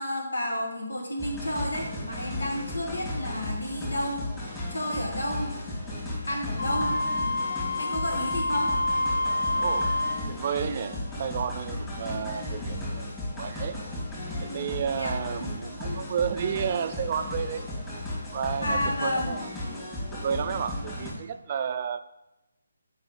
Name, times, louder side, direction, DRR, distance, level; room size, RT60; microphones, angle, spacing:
voice 1, 0.0-4.3 4.7-5.6 6.3-7.0 7.8-8.7 14.9-15.1 15.4-15.5 15.8-16.0 18.6-19.3, left 1 dB, 80° left, 0 dB, 2.1 m, -31 dB
sound 1, 1.2-21.1, left 1 dB, 15° left, 2.7 m, -35 dB
Wind instrument woodwind instrument, 6.6-10.3, left 2 dB, 50° left, 1.0 m, -28 dB
voice 2, 9.6-10.0 10.3-13.1 13.4-13.8 14.4-17.7 18.3-19.5 20.0-22.0, right 7 dB, 40° right, 10 dB, 0.4 m, -31 dB
7.5 x 5.4 x 4.1 m, 0.95 s
figure-of-eight pair, 155°, 0 cm